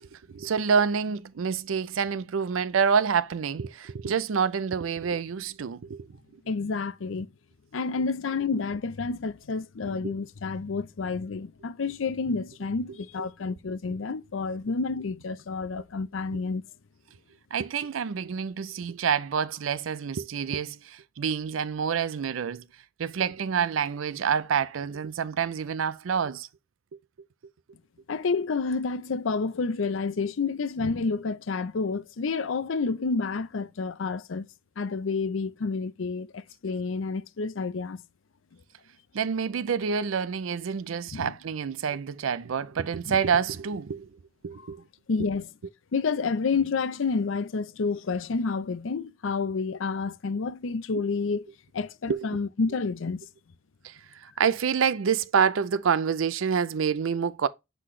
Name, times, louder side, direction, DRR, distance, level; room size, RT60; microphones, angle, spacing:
voice 1, 0.0-6.1 10.0-10.1 17.5-22.6 23.0-26.5 39.1-44.1 44.4-44.8 52.1-52.3 53.8-57.5, right 6 dB, 90° right, 0.5 m, -27 dB
voice 2, 6.5-7.3 7.7-16.6 28.1-34.5 34.8-38.0 41.1-41.3 43.1-43.2 44.6-44.7 45.1-45.5 45.9-51.5 51.7-53.2, left 4 dB, 80° left, 0.5 m, -29 dB
7.5 x 4.0 x 3.1 m
head